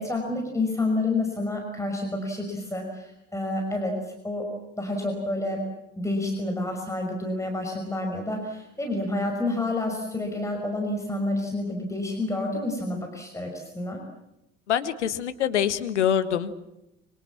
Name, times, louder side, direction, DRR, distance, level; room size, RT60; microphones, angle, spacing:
voice 1, 0.0-4.5 4.8-5.6 6.0-14.0, left 2 dB, 10° left, 2 dB, 5.7 m, -29 dB
voice 2, 14.7-16.6, left 9 dB, 70° left, 11 dB, 1.6 m, -25 dB
25.5 x 25.5 x 7.5 m, 0.87 s
figure-of-eight pair, 60°, 36 cm